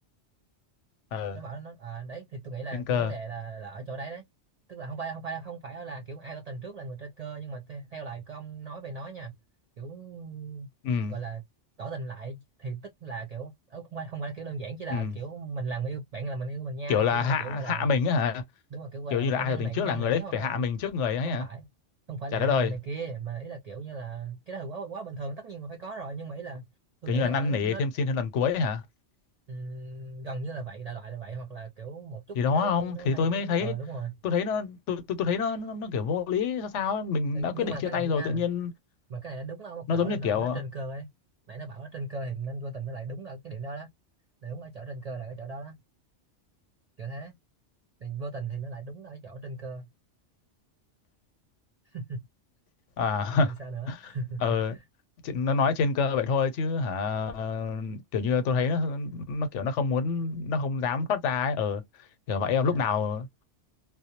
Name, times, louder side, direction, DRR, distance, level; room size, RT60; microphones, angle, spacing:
voice 1, 1.3-4.2 4.7-9.3 9.8-10.7 11.1-11.4 11.8-17.9 18.7-20.7 21.2-21.7 22.1-26.7 27.0-27.8 29.5-34.2 37.3-38.5 39.1-41.1 41.5-43.9 44.4-45.8 47.0-47.3 48.0-49.9 51.9-52.2 53.4-54.8 62.5-62.9, right 4 dB, 65° right, 0.3 m, -37 dB
voice 2, 2.7-3.1 10.8-11.1 14.9-15.1 16.9-18.4 19.1-21.5 22.3-22.7 27.1-28.8 32.3-33.7 34.2-38.7 39.9-40.6 53.0-53.5 53.9-54.0 54.4-54.7 55.2-61.8 62.3-63.4, left 5 dB, 80° left, 0.9 m, -27 dB
2.3 x 2.0 x 2.7 m
omnidirectional pair, 1.2 m